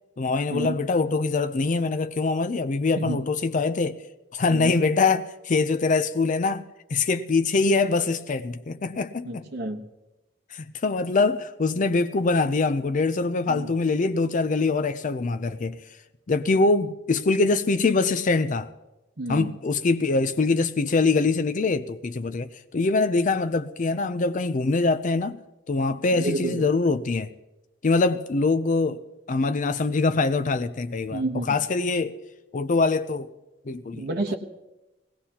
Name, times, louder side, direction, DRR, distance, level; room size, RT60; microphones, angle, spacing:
voice 1, 0.2-4.0 4.3-6.6 6.9-9.5 10.5-15.8 16.3-18.7 19.3-25.4 25.7-27.3 27.8-29.0 29.3-31.2 31.5-32.1 32.5-33.3 33.7-34.1, left 3 dB, 45° left, 0.5 m, -23 dB
voice 2, 9.2-9.8 13.5-13.7 19.2-19.5 26.1-26.7 31.1-31.5 33.9-34.4, right 2 dB, 55° right, 1.0 m, -30 dB
20.0 x 17.5 x 2.9 m
head